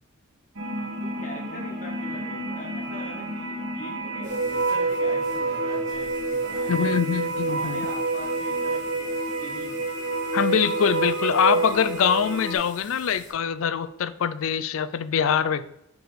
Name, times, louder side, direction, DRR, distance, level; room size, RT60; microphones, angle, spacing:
sound 1, 0.6-12.6, right 3 dB, 70° right, 1.4 m, -28 dB
voice 1, 0.8-6.9 7.4-9.9, equal, 35° left, -2 dB, 1.9 m, -43 dB
sound 2, 4.2-13.3, right 1 dB, 35° right, 2.5 m, -48 dB
voice 2, 6.7-7.8 10.3-15.6, left 7 dB, 70° left, 14 dB, 0.4 m, -24 dB
6.5 x 4.7 x 4.0 m, 0.80 s
head